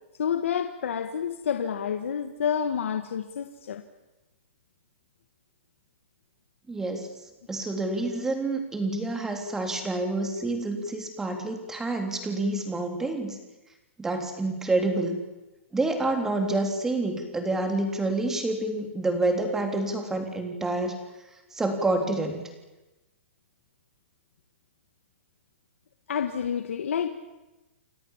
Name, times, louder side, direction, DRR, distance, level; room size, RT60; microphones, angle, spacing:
voice 1, 0.2-3.8 26.1-27.1, left 8 dB, 80° left, 7 dB, 1.8 m, -29 dB
voice 2, 6.7-7.1 7.5-13.4 14.0-15.2 15.7-21.0 21.5-22.5, right 2 dB, 5° right, 4 dB, 3.5 m, -28 dB
29.0 x 24.0 x 7.5 m, 1.1 s
hypercardioid pair, 165°, 7 cm